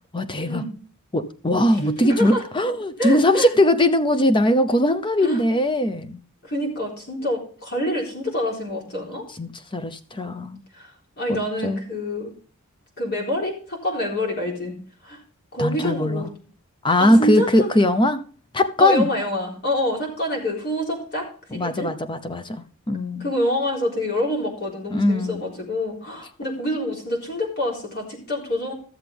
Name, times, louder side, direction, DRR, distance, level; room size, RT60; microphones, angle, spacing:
voice 1, 0.1-0.6 1.1-6.2 9.4-10.6 11.3-11.4 11.6-11.8 15.6-16.3 16.8-18.2 18.5-19.1 21.5-23.3 24.9-25.4, left 1 dB, 20° left, 0.8 m, -20 dB
voice 2, 1.8-2.4 3.0-3.5 5.2-5.4 6.4-9.2 10.7-10.9 11.2-12.3 13.0-14.8 15.0-15.2 15.5-16.3 17.0-17.5 18.8-21.9 23.2-28.7, left 1 dB, 50° left, 3.9 m, -26 dB
13.5 x 7.3 x 3.5 m
head